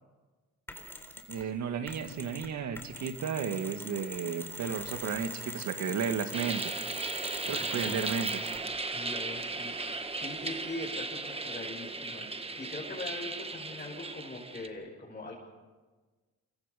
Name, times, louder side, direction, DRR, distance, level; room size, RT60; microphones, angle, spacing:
Mechanisms, 0.7-1.5 1.9-8.7, equal, 10° left, 3.9 m, -42 dB
voice 1, 1.3-6.8 7.5-8.5, right 6 dB, 65° right, 7 dB, 2.2 m, -33 dB
sound 1, 6.3-14.7, right 3 dB, 20° right, 1.5 m, -36 dB
voice 2, 7.5-8.0 8.9-15.3, left 2 dB, 25° left, -4 dB, 6.3 m, -42 dB
28.5 x 24.5 x 5.4 m, 1.3 s
cardioid pair, 90°, 30 cm